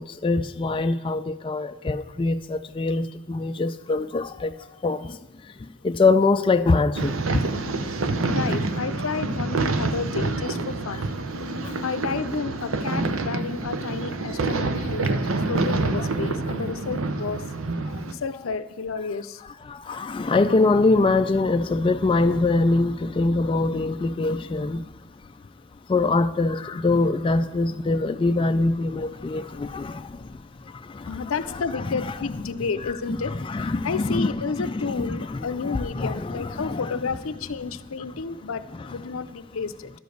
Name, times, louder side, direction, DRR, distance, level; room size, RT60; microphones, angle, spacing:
voice 1, 0.0-4.5 4.8-5.2 5.8-7.4 11.6-11.7 19.6-24.8 25.9-30.3 30.8-31.1 31.9-32.1 33.1-36.9, left 3 dB, 25° left, 8 dB, 0.3 m, -23 dB
sound 1, 7.0-18.1, right 3 dB, 85° right, 0.7 m, -27 dB
voice 2, 8.3-11.1 11.8-15.2 15.5-17.4 18.1-19.4 31.1-39.9, left 5 dB, 85° left, 14 dB, 0.6 m, -31 dB
11.5 x 5.2 x 7.8 m, 1.0 s
head